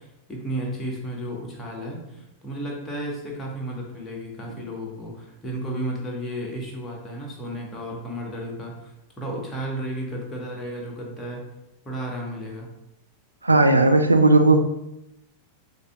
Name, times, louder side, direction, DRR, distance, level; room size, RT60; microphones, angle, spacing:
voice 1, 0.0-11.4 11.8-12.7, right 1 dB, 10° left, -2 dB, 1.1 m, -33 dB
voice 2, 13.4-14.6, right 2 dB, 80° right, 7 dB, 0.3 m, -16 dB
6.4 x 2.7 x 2.2 m, 0.89 s
figure-of-eight pair, 90°, 0 cm